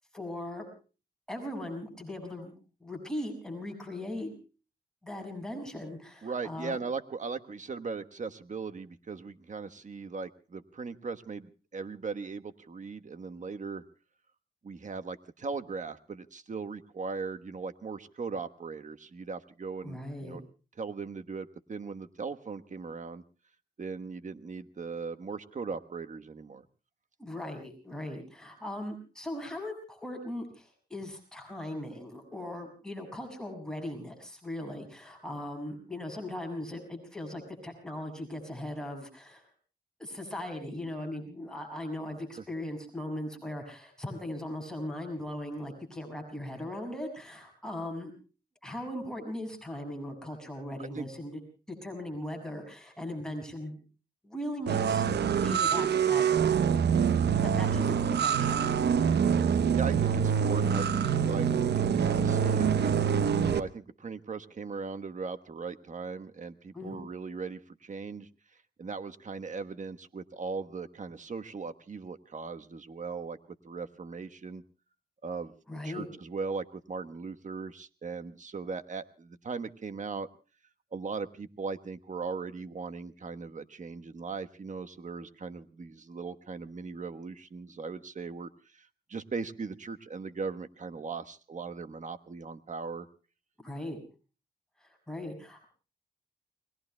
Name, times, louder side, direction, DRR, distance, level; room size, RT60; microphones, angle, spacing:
voice 1, 0.1-0.7 1.3-2.5 2.8-4.3 5.0-6.8 19.8-20.4 27.2-39.5 40.0-48.1 48.6-51.3 51.7-53.8 54.2-55.1 55.4-56.2 56.9-57.0 57.4-58.6 66.7-67.0 75.7-76.1 93.6-94.0 94.8-95.6, left 1 dB, 5° left, 2 dB, 6.4 m, -39 dB
voice 2, 6.2-13.8 14.6-20.4 20.8-23.2 23.8-26.6 42.3-42.4 50.9-51.0 59.7-62.9 63.3-68.3 68.8-73.4 73.6-74.6 75.2-75.5 75.8-80.3 80.9-93.1, right 4 dB, 45° right, 9 dB, 1.2 m, -38 dB
sound 1, 54.7-63.6, right 7 dB, 80° right, 0.8 m, -25 dB
29.5 x 21.0 x 2.2 m, 0.36 s
cardioid pair, 65°, 17 cm